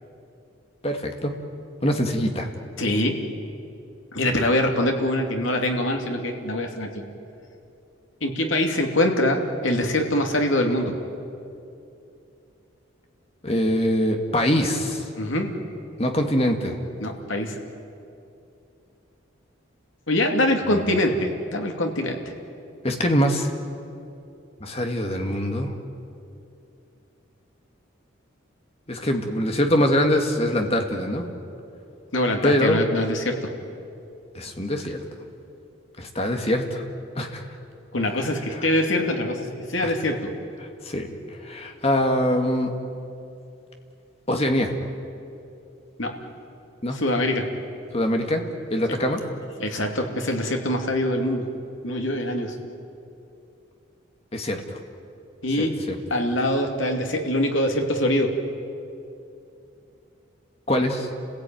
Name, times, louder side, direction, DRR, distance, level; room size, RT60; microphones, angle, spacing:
voice 1, 0.8-1.3 1.8-2.5 13.4-15.0 16.0-16.8 20.7-20.8 22.8-23.5 24.6-25.7 28.9-31.3 32.4-32.8 34.4-35.0 36.0-36.8 37.2-37.4 38.1-38.2 38.5-38.7 39.8-39.9 40.8-41.1 41.4-42.7 44.3-44.7 46.8-47.0 47.9-48.4 48.7-49.2 54.3-54.6 55.6-56.0 60.7-61.1, equal, 30° left, 4 dB, 2.0 m, -23 dB
voice 2, 2.8-3.2 4.1-7.0 8.2-11.0 15.2-15.5 17.0-17.6 20.1-22.2 32.1-33.5 37.9-40.3 46.0-46.2 46.9-47.5 49.6-51.5 51.8-52.6 55.4-55.8 56.1-58.3, left 1 dB, 75° left, 3 dB, 2.7 m, -24 dB
29.5 x 16.0 x 9.3 m, 2.7 s
head